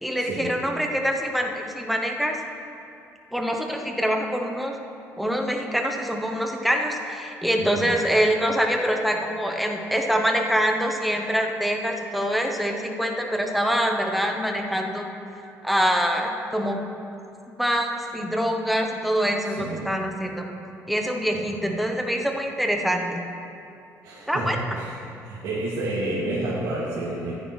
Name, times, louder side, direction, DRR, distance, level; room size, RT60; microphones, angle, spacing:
voice 1, 0.0-2.4 3.3-4.8 5.2-15.1 15.6-16.8 17.6-20.5 20.9-23.2 24.3-24.6, equal, ahead, 2 dB, 0.8 m, -25 dB
voice 2, 19.5-19.9 21.3-21.4 24.0-24.9 25.2-27.3, right 2 dB, 85° right, -9 dB, 2.2 m, -29 dB
14.0 x 9.6 x 3.1 m, 2.7 s
cardioid pair, 140°, 6 cm